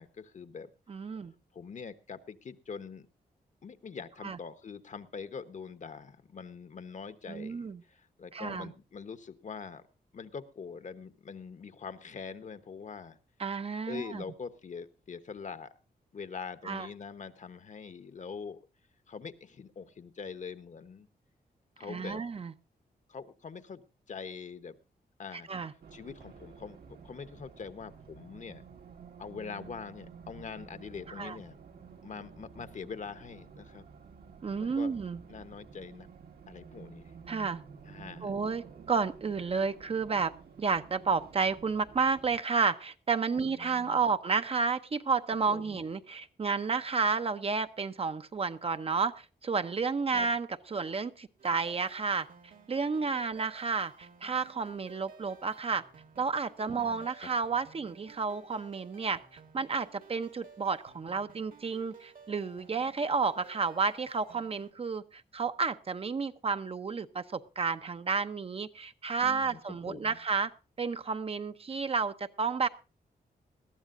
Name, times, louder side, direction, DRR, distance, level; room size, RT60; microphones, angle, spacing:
voice 1, 0.0-0.7 1.5-3.1 3.6-9.8 10.1-13.2 13.9-15.7 16.1-18.6 19.1-21.1 21.8-22.3 23.1-23.8 24.1-24.8 25.2-25.5 25.9-26.8 27.0-28.6 29.2-31.6 32.0-33.8 34.6-35.0 35.3-36.1 36.5-37.1 37.8-38.3 43.4-44.0 45.5-45.8 50.1-50.3 56.7-57.3 69.2-69.6 69.9-70.2, left 5 dB, 50° left, 11 dB, 1.0 m, -44 dB
voice 2, 0.9-1.3 4.2-4.4 7.3-7.8 8.3-8.7 13.4-14.2 16.7-16.9 21.9-22.5 25.5-25.7 31.2-31.4 34.4-35.2 37.3-37.6 38.2-40.3 40.6-52.3 52.7-55.8 56.2-70.5 70.8-72.7, right 5 dB, 35° right, 10 dB, 0.7 m, -31 dB
Race car auto racing, 25.8-42.4, right 6 dB, 75° right, 1.8 m, -51 dB
sound 1, 51.4-64.7, right 5 dB, 60° right, 1.6 m, -55 dB
20.5 x 13.5 x 2.5 m, 0.30 s
wide cardioid pair, 135°, 16 cm